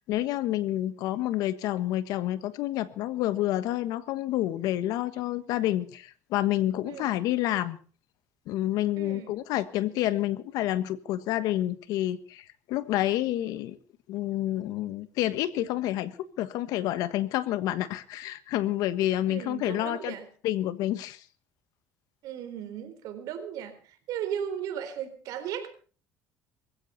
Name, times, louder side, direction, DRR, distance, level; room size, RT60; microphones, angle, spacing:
voice 1, 0.1-7.8 8.5-13.8 14.1-20.1 20.4-21.2, left 14 dB, 75° left, 14 dB, 1.4 m, -29 dB
voice 2, 9.0-9.3 19.3-20.2 22.2-23.8 24.1-25.7, right 9 dB, 70° right, 8 dB, 3.9 m, -36 dB
21.0 x 16.0 x 4.2 m, 0.40 s
cardioid pair, 125°, 6 cm